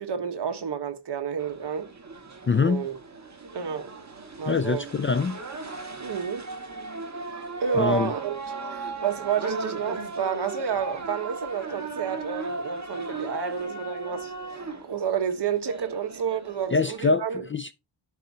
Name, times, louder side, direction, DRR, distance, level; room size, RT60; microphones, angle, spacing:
voice 1, 0.0-1.9 2.6-3.0 3.5-3.9 4.4-4.9 6.0-6.5 7.6-8.4 8.7-17.4, right 7 dB, 55° right, 1.2 m, -30 dB
sound 1, 1.4-17.1, right 3 dB, 35° right, 1.6 m, -37 dB
voice 2, 2.5-2.8 4.5-5.4 7.7-8.1 16.7-17.7, left 4 dB, 25° left, 0.4 m, -24 dB
11.5 x 4.7 x 2.8 m
wide cardioid pair, 115°, 48 cm